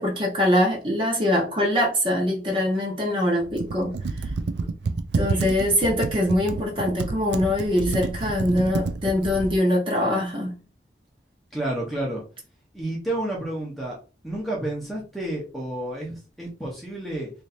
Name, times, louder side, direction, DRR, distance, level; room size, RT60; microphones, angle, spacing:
voice 1, 0.0-3.9 5.1-10.6, left 1 dB, 30° right, -1 dB, 1.1 m, -23 dB
Computer keyboard, 3.4-9.6, right 3 dB, 80° right, 0.4 m, -29 dB
voice 2, 11.5-12.2 12.7-14.0 14.2-17.3, right 1 dB, ahead, -3 dB, 0.8 m, -30 dB
3.2 x 2.7 x 4.1 m, 0.35 s
head